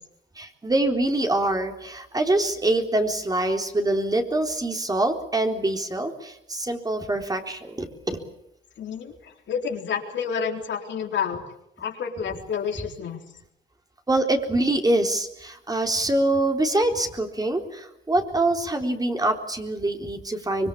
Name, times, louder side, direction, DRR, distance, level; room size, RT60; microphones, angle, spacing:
voice 1, 0.4-8.2 14.1-20.7, right 2 dB, 20° right, 4 dB, 3.9 m, -24 dB
voice 2, 8.8-11.4 11.8-13.2, left 7 dB, 65° left, 3 dB, 3.9 m, -29 dB
25.5 x 21.5 x 8.6 m, 0.79 s
cardioid pair, 90°, 20 cm